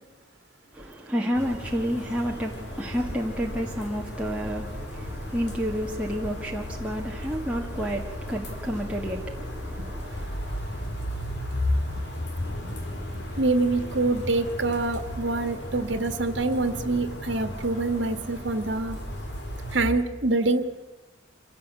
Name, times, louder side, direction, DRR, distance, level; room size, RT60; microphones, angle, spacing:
voice 1, 0.7-10.3, equal, 5° right, 1.7 m, -30 dB
sound 1, 1.3-19.9, left 1 dB, 55° left, 3.9 m, -34 dB
voice 2, 13.4-19.0 19.7-20.7, right 2 dB, 65° right, 1.7 m, -25 dB
26.0 x 17.0 x 8.3 m
head